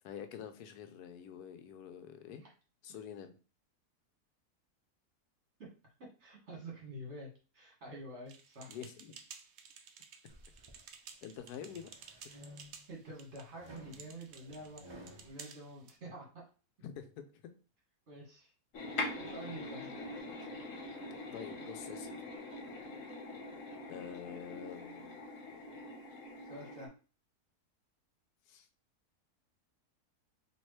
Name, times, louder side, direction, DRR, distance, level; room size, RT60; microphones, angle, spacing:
voice 1, 0.0-2.4 2.8-3.4 8.7-9.1 11.2-11.9 16.8-17.2 21.3-22.2 23.9-25.2 28.5-28.7, left 8 dB, 80° left, 8 dB, 1.1 m, -46 dB
voice 2, 6.2-8.8 12.3-12.4 12.9-16.4 18.1-18.5 19.1-19.9 26.4-26.9, right 1 dB, 45° right, -2 dB, 1.8 m, -48 dB
sound 1, 8.3-16.0, right 6 dB, 65° right, 0.7 m, -54 dB
sound 2, 10.3-10.8 11.4-13.0 13.6-15.3, equal, 25° right, 0.6 m, -54 dB
sound 3, 18.7-26.9, left 2 dB, 60° left, 1.3 m, -43 dB
4.3 x 2.9 x 3.2 m, 0.35 s
omnidirectional pair, 1.6 m